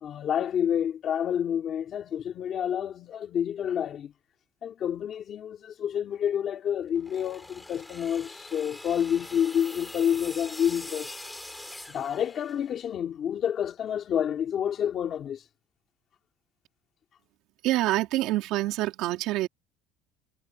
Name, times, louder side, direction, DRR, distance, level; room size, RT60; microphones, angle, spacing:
voice 1, 0.0-4.1 4.6-11.1 11.9-15.4, left 9 dB, 35° left, 2.5 m, -29 dB
sound 1, 7.0-12.8, left 1 dB, 5° left, 5.6 m, -43 dB
voice 2, 17.6-19.5, right 16 dB, 60° right, 3.1 m, -26 dB
cardioid pair, 175°, 0 cm